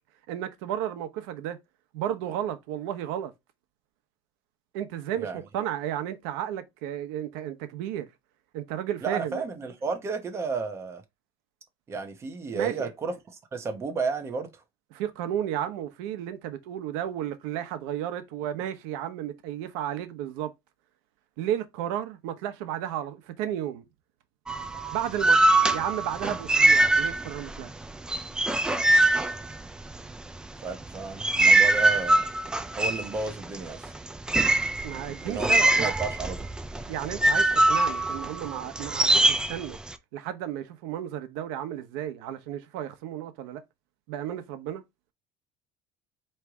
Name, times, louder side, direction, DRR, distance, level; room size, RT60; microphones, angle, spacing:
voice 1, 0.3-1.6 1.9-3.3 4.7-8.1 8.5-9.4 12.5-12.9 14.9-20.5 21.4-23.8 24.9-27.7 34.8-35.9 36.9-39.8 40.1-43.6 44.1-44.8, right 11 dB, 90° right, 0.9 m, -33 dB
voice 2, 9.0-11.0 11.9-13.1 13.5-14.5 30.6-32.3 32.8-33.9 35.2-36.5, right 4 dB, 25° right, 1.0 m, -32 dB
sound 1, 24.5-27.6 27.8-30.1 30.7-39.9, right 2 dB, 5° right, 0.3 m, -23 dB
4.5 x 3.2 x 3.6 m
cardioid pair, 155°, 11 cm